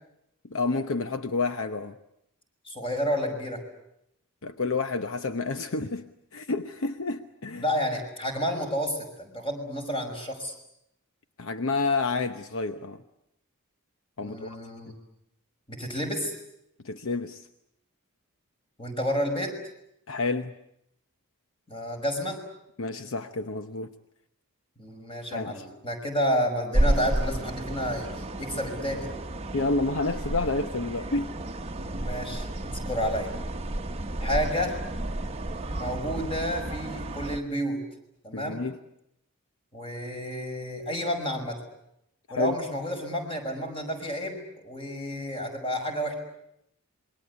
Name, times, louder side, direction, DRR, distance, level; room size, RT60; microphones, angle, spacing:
voice 1, 0.5-1.9 4.4-6.1 6.3-7.6 11.4-13.0 14.2-14.6 16.8-17.5 20.1-20.5 22.8-23.9 25.3-25.6 29.5-31.3 38.3-38.8 42.3-42.6, left 3 dB, 65° left, 8 dB, 0.9 m, -29 dB
voice 2, 2.7-3.6 7.6-10.5 14.2-14.9 15.7-16.4 18.8-19.5 21.7-22.4 24.8-28.1 28.4-29.1 31.8-33.3 34.2-34.8 35.8-37.8 38.2-38.6 39.7-41.6 42.3-46.1, equal, 25° left, 4 dB, 5.8 m, -30 dB
sound 1, 26.7-37.4, right 1 dB, 30° right, 1.1 m, -31 dB
27.5 x 22.5 x 8.2 m, 0.79 s
head